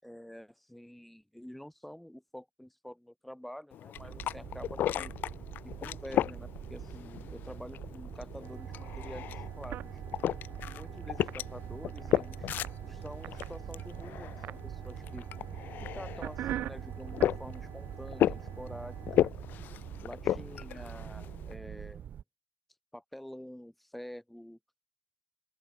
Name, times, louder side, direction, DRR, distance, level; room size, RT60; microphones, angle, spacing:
voice 1, 0.0-5.1 5.6-10.0 10.7-12.5 12.9-15.2 15.9-19.7 20.0-22.1 22.9-24.6, equal, 5° left, 7.7 m, -47 dB
sound 1, 3.7-21.5, left 12 dB, 70° left, 0.9 m, -35 dB
sound 2, 3.9-22.2, right 9 dB, 60° right, 6.4 m, -45 dB
sound 3, 8.4-19.3, right 12 dB, 75° right, 4.9 m, -43 dB
open air
cardioid pair, 110°, 3 cm